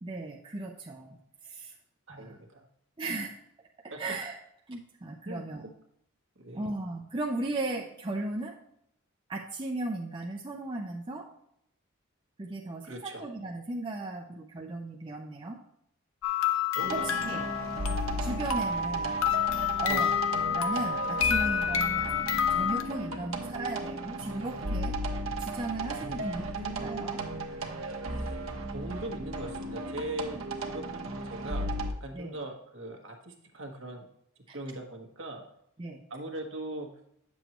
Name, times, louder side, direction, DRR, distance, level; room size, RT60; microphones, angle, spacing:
voice 1, 0.0-1.2 1.4-1.7 2.1-2.4 3.0-3.4 4.0-4.4 4.7-5.6 6.5-8.6 9.3-11.3 12.4-15.6 16.9-17.4 18.2-19.2 19.8-20.2 20.5-25.0 25.4-26.4 26.8-27.2 32.1-32.4 34.5-34.6 35.8-36.0, right 2 dB, 20° right, 0 dB, 0.5 m, -36 dB
voice 2, 2.1-2.7 3.9-4.0 5.3-5.4 6.4-6.7 12.8-13.2 16.7-17.4 19.9-20.0 26.0-27.1 28.7-30.4 30.7-34.1 34.5-35.4 36.1-36.9, right 1 dB, 60° right, 1 dB, 1.3 m, -40 dB
sound 1, 16.2-22.8, left 7 dB, 75° left, 0.7 m, -29 dB
sound 2, 16.8-31.9, right 2 dB, 75° right, 0.9 m, -35 dB
8.9 x 7.0 x 3.0 m, 0.75 s
head